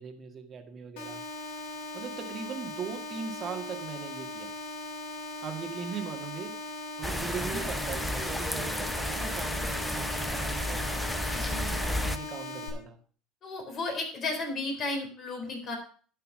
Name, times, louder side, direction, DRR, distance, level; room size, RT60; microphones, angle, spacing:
voice 1, 0.0-1.7 1.9-4.5 5.4-11.0 11.6-13.0, right 6 dB, 35° right, 5 dB, 1.9 m, -40 dB
sound 1, 1.0-12.7, left 2 dB, 75° left, 3.2 m, -39 dB
sound 2, 7.0-12.2, left 1 dB, 5° left, 0.7 m, -32 dB
voice 2, 11.2-11.7 13.4-15.8, left 3 dB, 40° left, 3 dB, 4.1 m, -34 dB
11.5 x 5.8 x 6.2 m, 0.43 s
supercardioid pair, 105°, 0 cm